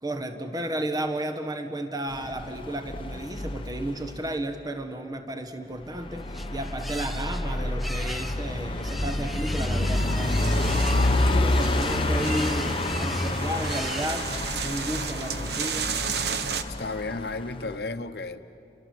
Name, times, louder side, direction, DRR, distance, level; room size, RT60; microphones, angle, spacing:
voice 1, 0.0-11.0 11.3-14.3 14.6-15.9, right 1 dB, 20° right, 7 dB, 1.6 m, -33 dB
sound 1, 2.1-4.3 6.0-17.7, left 1 dB, 30° left, 1.0 m, -28 dB
sound 2, 5.7-14.6, equal, ahead, 0.6 m, -40 dB
sound 3, 9.9-16.6, right 5 dB, 65° right, 1.2 m, -33 dB
voice 2, 16.7-18.4, left 3 dB, 60° left, 9 dB, 1.1 m, -33 dB
30.0 x 25.0 x 7.9 m, 2.8 s
head